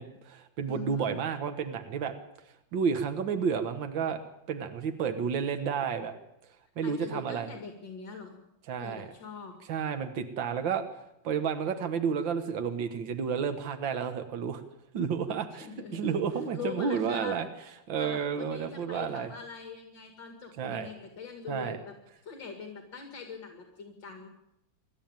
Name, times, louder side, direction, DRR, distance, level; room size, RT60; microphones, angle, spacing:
voice 1, 0.0-2.1 2.7-4.2 4.5-6.1 6.8-7.5 8.7-9.1 9.7-10.9 11.2-14.6 14.9-15.7 15.9-17.5 17.9-19.3 20.6-20.9 21.5-21.8, right 6 dB, 70° right, 7 dB, 2.1 m, -31 dB
voice 2, 0.7-1.1 6.8-8.4 8.8-9.5 15.5-17.4 17.9-22.0 22.2-24.3, left 6 dB, 65° left, 4 dB, 2.9 m, -43 dB
27.0 x 12.5 x 9.0 m, 0.84 s
omnidirectional pair, 2.2 m